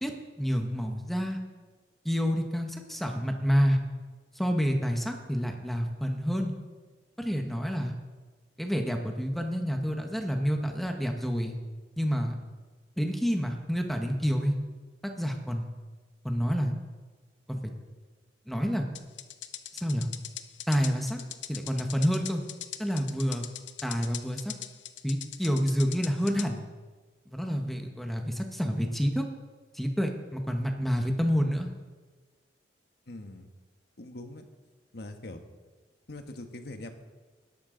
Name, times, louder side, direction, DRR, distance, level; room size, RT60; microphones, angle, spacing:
voice 1, 0.4-1.4 2.0-3.8 4.3-6.5 7.2-7.9 8.6-11.6 12.0-12.3 13.0-14.5 15.2-15.7 16.2-16.7 17.5-17.7 18.5-18.9 19.7-20.1 20.7-21.2 21.5-22.4 22.8-23.4 23.8-24.5 25.0-26.6 27.3-29.3 29.7-31.7, equal, ahead, 3 dB, 1.2 m, -28 dB
sound 1, 19.0-26.5, left 11 dB, 85° left, 0.9 m, -41 dB
voice 2, 33.1-33.5 34.0-34.5 34.9-35.4 36.1-36.9, left 2 dB, 60° left, 5 dB, 1.4 m, -42 dB
19.5 x 11.5 x 3.9 m, 1.3 s
head